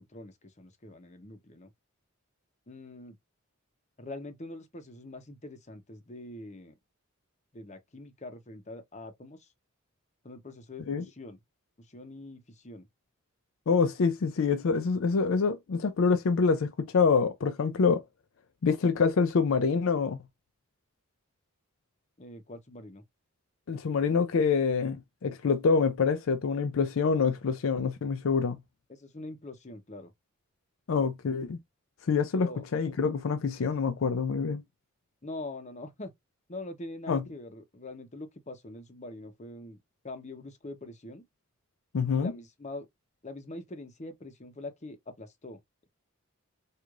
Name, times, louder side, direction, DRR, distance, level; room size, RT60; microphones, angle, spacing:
voice 1, 0.0-1.7 2.7-3.2 4.0-6.7 7.5-9.5 10.2-11.4 11.8-12.9 22.2-23.0 28.9-30.1 32.3-32.7 35.2-36.1 36.5-39.8 40.0-41.3 42.1-42.9 43.2-45.6, left 2 dB, 35° left, 0.8 m, -43 dB
voice 2, 13.7-18.0 18.6-20.2 23.7-28.6 30.9-31.6 32.1-34.6 37.1-37.2 41.9-42.3, left 5 dB, 65° left, 0.4 m, -26 dB
4.7 x 2.5 x 2.4 m
head